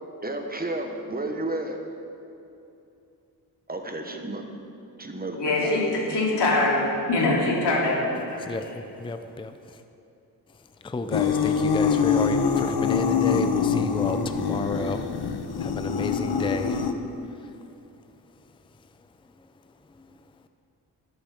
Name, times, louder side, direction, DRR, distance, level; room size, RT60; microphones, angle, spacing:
voice 1, 0.2-1.8 3.7-4.4 5.0-6.1, right 2 dB, 20° right, 4 dB, 1.2 m, -32 dB
voice 2, 5.4-8.8, left 2 dB, 90° left, -4 dB, 3.3 m, -24 dB
voice 3, 8.4-9.8 10.6-16.9 17.2-17.5 19.4-19.5 19.9-20.2, left 3 dB, 15° left, 8 dB, 0.5 m, -33 dB
sound 1, 11.1-16.9, left 6 dB, 70° left, 0.9 m, -24 dB
13.0 x 11.0 x 5.9 m, 2.7 s
wide cardioid pair, 125°, 40 cm